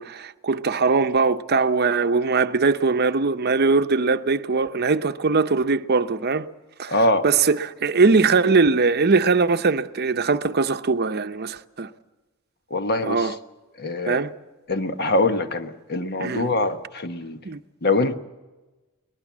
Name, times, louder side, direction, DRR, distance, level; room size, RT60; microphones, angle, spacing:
voice 1, 0.0-6.5 6.8-7.0 7.2-11.9 13.0-13.4 14.1-14.3 16.2-16.5 17.4-17.6, right 4 dB, 50° right, 0.8 m, -21 dB
voice 2, 6.9-7.2 12.7-13.3 13.8-14.2 14.7-17.4 17.8-18.2, left 2 dB, 50° left, 1.3 m, -23 dB
22.5 x 19.5 x 7.4 m
head